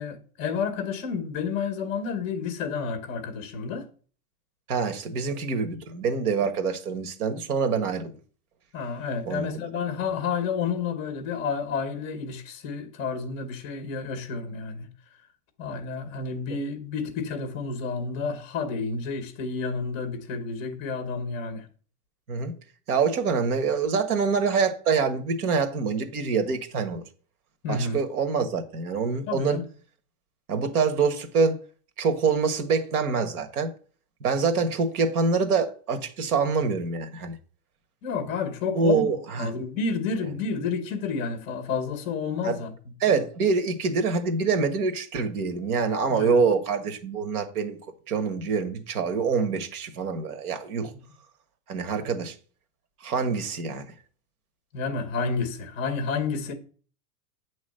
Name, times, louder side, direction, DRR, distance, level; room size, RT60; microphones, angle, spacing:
voice 1, 0.0-3.9 8.7-14.9 15.6-21.7 27.6-28.0 29.3-29.6 38.0-39.1 39.4-42.7 46.1-46.4 50.8-51.0 52.0-52.1 54.7-56.5, left 5 dB, 15° left, 0.6 m, -30 dB
voice 2, 4.7-8.1 9.3-9.5 22.3-22.5 22.9-27.0 27.7-29.6 30.5-31.6 32.0-33.7 34.2-37.4 38.7-39.5 42.4-42.6 43.0-47.8 48.1-50.9 51.7-52.3 53.0-53.9, right 5 dB, 70° right, 1.5 m, -25 dB
9.4 x 3.2 x 6.3 m
supercardioid pair, 180°, 46 cm